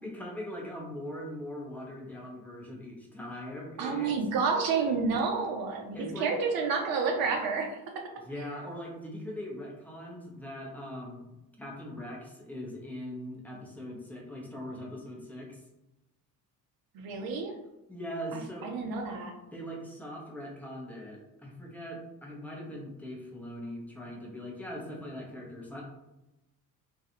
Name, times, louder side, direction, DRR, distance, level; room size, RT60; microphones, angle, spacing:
voice 1, 0.0-4.1 5.9-6.3 8.2-11.3 11.6-15.6 17.9-18.7 19.5-25.8, equal, 5° left, -2 dB, 0.6 m, -41 dB
voice 2, 3.8-7.8 16.9-17.5 18.3-19.3, right 5 dB, 45° right, 2 dB, 0.6 m, -30 dB
2.4 x 2.3 x 2.8 m, 0.95 s
figure-of-eight pair, 55°, 50 cm